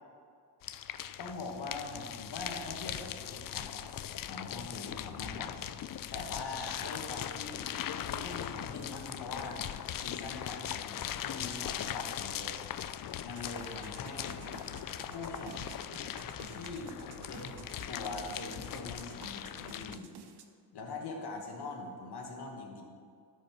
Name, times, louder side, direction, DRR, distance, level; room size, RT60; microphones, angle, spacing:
sound 1, 0.6-20.0, left 10 dB, 55° left, 0.5 m, -40 dB
voice 1, 1.2-3.9 4.3-5.6 6.1-9.6 10.0-12.6 13.2-14.4 15.0-15.7 16.5-16.9 17.3-17.6 17.9-20.1 20.7-22.8, left 3 dB, 70° left, 1 dB, 1.8 m, -42 dB
sound 2, 13.3-20.4, right 6 dB, 70° right, 1.0 m, -51 dB
13.0 x 5.3 x 6.0 m, 2.3 s
wide cardioid pair, 130°, 41 cm